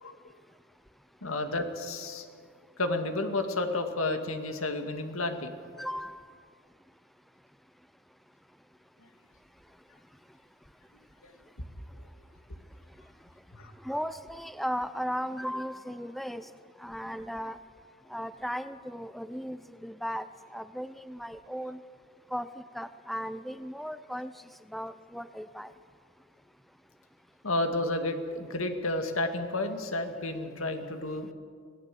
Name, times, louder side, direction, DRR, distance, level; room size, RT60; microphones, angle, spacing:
voice 1, 1.2-2.3 2.8-5.5 11.2-11.3 11.6-11.7 13.5-13.7 27.4-31.3, left 2 dB, 80° left, 6 dB, 2.1 m, -31 dB
voice 2, 5.8-6.3 13.8-16.5 16.8-17.6 18.1-20.3 20.5-21.8 22.3-22.5 22.7-24.3 24.7-25.7, equal, ahead, 12 dB, 0.5 m, -36 dB
25.0 x 17.5 x 7.7 m, 2.1 s
head